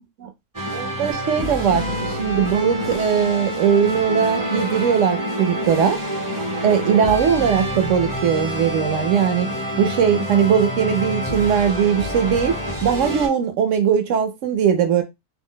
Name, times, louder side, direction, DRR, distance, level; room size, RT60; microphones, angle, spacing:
sound 1, 0.5-13.3, equal, 20° right, 0.6 m, -27 dB
voice 1, 0.7-6.0 6.6-9.5 9.8-15.0, right 7 dB, 65° right, 0.8 m, -20 dB
2.6 x 2.1 x 3.7 m
omnidirectional pair, 1.6 m